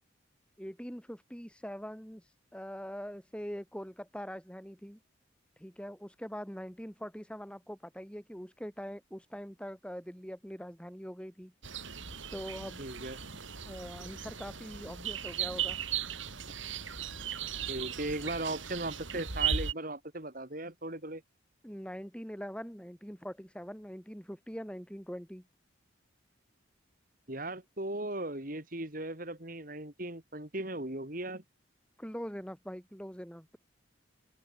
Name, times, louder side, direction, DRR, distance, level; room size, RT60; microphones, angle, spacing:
voice 1, 0.6-5.0 5.6-11.5 11.9-12.8 13.7-15.8 21.6-25.4 32.0-33.6, equal, 5° left, 7.8 m, -43 dB
sound 1, 11.6-19.7, right 8 dB, 75° right, 4.3 m, -37 dB
voice 2, 12.8-13.4 17.7-21.2 27.3-31.4, right 1 dB, 45° right, 3.5 m, -38 dB
open air
head